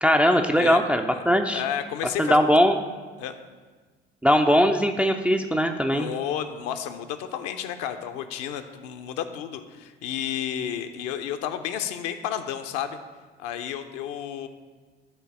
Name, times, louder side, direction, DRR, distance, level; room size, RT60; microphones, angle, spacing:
voice 1, 0.0-1.6 2.2-2.7 4.2-6.1, equal, 5° right, 4 dB, 0.4 m, -20 dB
voice 2, 1.5-2.4 3.2-3.4 5.9-13.0 13.4-14.5, left 9 dB, 50° left, 8 dB, 0.7 m, -31 dB
12.0 x 4.0 x 5.3 m, 1.4 s
figure-of-eight pair, 60°, 32 cm